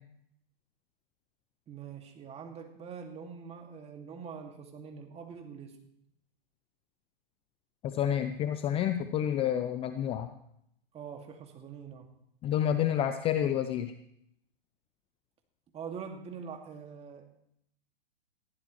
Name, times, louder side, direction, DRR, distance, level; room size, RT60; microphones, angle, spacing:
voice 1, 1.7-5.8 10.9-12.1 15.7-17.3, right 6 dB, 20° right, 3 dB, 2.2 m, -44 dB
voice 2, 7.8-10.3 12.4-13.9, left 10 dB, 20° left, 9 dB, 0.6 m, -29 dB
19.5 x 15.0 x 3.2 m, 0.76 s
hypercardioid pair, 125°, 29 cm